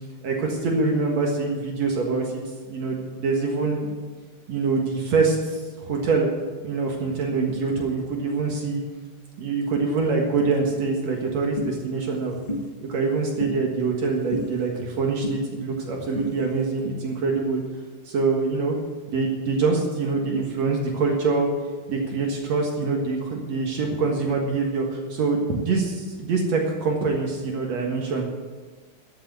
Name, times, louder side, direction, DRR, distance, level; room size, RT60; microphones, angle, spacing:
voice 1, 0.2-2.4 2.7-3.9 4.5-6.3 6.6-8.8 9.4-12.3 12.9-17.6 18.1-18.8 19.1-21.5 21.9-28.2, right 4 dB, 65° right, 0 dB, 2.7 m, -24 dB
sound 1, 11.6-11.7 12.5-12.6 13.4-13.5 14.3-14.5 15.2-15.4 16.1-16.3, left 1 dB, 25° left, 1.0 m, -27 dB
14.0 x 7.9 x 7.6 m, 1.4 s
omnidirectional pair, 3.4 m